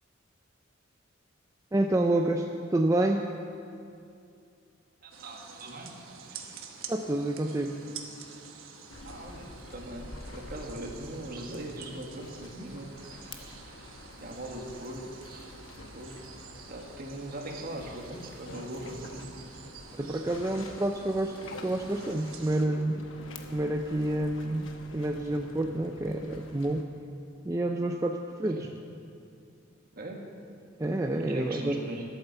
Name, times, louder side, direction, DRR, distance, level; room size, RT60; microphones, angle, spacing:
voice 1, 1.7-3.3 6.9-7.7 19.9-21.4 21.6-23.0 23.5-26.8 27.4-28.7 30.8-31.8, right 1 dB, 15° right, 3 dB, 0.4 m, -28 dB
voice 2, 5.0-5.9 6.2-6.6 9.0-13.6 14.2-15.5 15.9-16.2 16.7-19.4 20.0-20.2 28.5-28.7 29.9-30.2 31.2-32.0, right 1 dB, 45° right, 1 dB, 1.6 m, -41 dB
sound 1, 5.1-22.7, right 6 dB, 85° right, 1.1 m, -49 dB
sound 2, 8.9-26.8, left 2 dB, 70° left, 1.0 m, -48 dB
12.5 x 8.7 x 6.9 m, 2.4 s
head